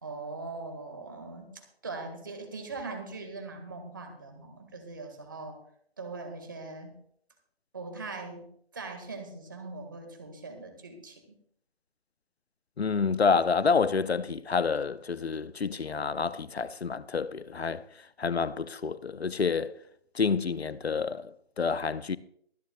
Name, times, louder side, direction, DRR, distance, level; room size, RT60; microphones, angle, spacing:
voice 1, 0.0-5.6 6.0-7.0 7.7-8.5 8.7-11.4, right 3 dB, 20° right, 1.6 m, -41 dB
voice 2, 12.8-17.8 18.2-19.8 20.1-21.3 21.6-22.2, left 5 dB, 75° left, 0.8 m, -28 dB
23.0 x 10.5 x 2.3 m
figure-of-eight pair, 175°, 31 cm